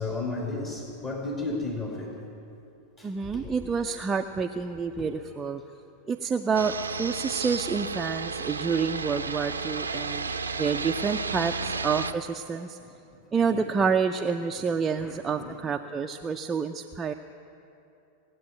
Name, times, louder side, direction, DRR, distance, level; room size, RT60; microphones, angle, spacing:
voice 1, 0.0-2.2 3.0-3.7 4.9-5.1 11.6-11.7 12.8-12.9 13.5-13.7 14.6-14.7 15.0-15.6, left 2 dB, 30° left, -1 dB, 2.1 m, -34 dB
voice 2, 3.0-5.6 6.1-10.3 10.5-12.8 13.3-17.1, right 5 dB, 20° right, 5 dB, 0.5 m, -28 dB
sound 1, 6.5-12.1, right 4 dB, 75° right, 0.5 m, -32 dB
18.0 x 8.2 x 8.9 m, 2.8 s
figure-of-eight pair, 90°, 0 cm